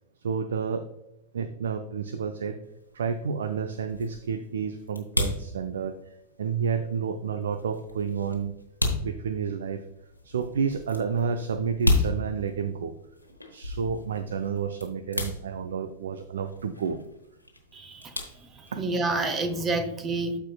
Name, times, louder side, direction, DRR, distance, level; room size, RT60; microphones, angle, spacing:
voice 1, 0.2-0.9 1.3-2.6 2.9-6.0 6.4-8.5 9.0-9.8 10.2-12.9 13.5-17.0 18.7-18.8, right 6 dB, 65° right, 10 dB, 0.4 m, -30 dB
sound 1, 2.6-19.1, left 2 dB, 90° left, 1.1 m, -34 dB
voice 2, 17.7-20.4, right 2 dB, 25° right, 9 dB, 0.9 m, -29 dB
13.0 x 4.6 x 2.3 m, 0.87 s
figure-of-eight pair, 90°, 0 cm